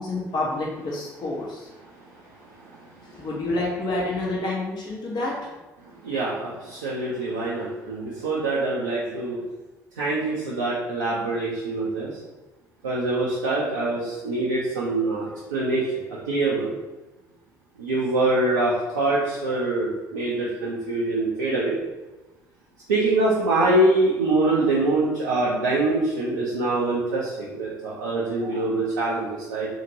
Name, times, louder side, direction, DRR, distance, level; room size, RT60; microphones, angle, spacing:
voice 1, 0.0-1.7 3.1-5.3, left 2 dB, 50° left, -4 dB, 0.8 m, -28 dB
voice 2, 6.0-9.4 10.0-12.1 12.8-15.2 15.5-16.7 17.8-21.8 22.9-29.7, right 2 dB, 80° right, -7 dB, 0.5 m, -24 dB
2.8 x 2.8 x 2.6 m, 1.1 s
figure-of-eight pair, 50°, 9 cm